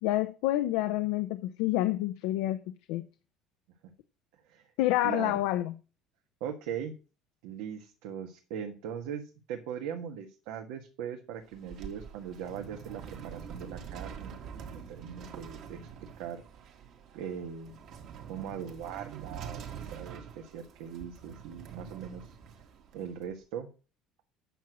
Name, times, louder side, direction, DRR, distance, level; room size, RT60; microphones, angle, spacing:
voice 1, 0.0-2.6 2.9-3.0 4.8-5.7, left 15 dB, 85° left, 0.7 m, -28 dB
voice 2, 5.0-5.4 6.4-6.9 7.4-9.2 9.5-15.8 16.2-16.4 17.1-17.8 18.3-22.3 22.9-23.7, right 8 dB, 80° right, 1.6 m, -40 dB
sound 1, 11.4-23.3, right 7 dB, 55° right, 2.0 m, -45 dB
8.9 x 6.3 x 6.2 m
cardioid pair, 145°, 0 cm